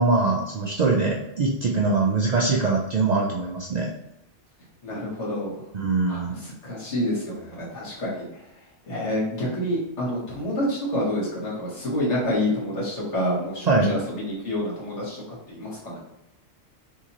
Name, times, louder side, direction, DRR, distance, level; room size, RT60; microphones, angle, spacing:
voice 1, 0.0-3.9 5.7-6.4 13.7-13.9, right 3 dB, 60° right, -1 dB, 0.4 m, -22 dB
voice 2, 4.8-5.5 6.1-8.3 8.9-16.0, left 1 dB, 75° left, -5 dB, 1.7 m, -28 dB
3.7 x 2.8 x 2.9 m, 0.84 s
omnidirectional pair, 1.2 m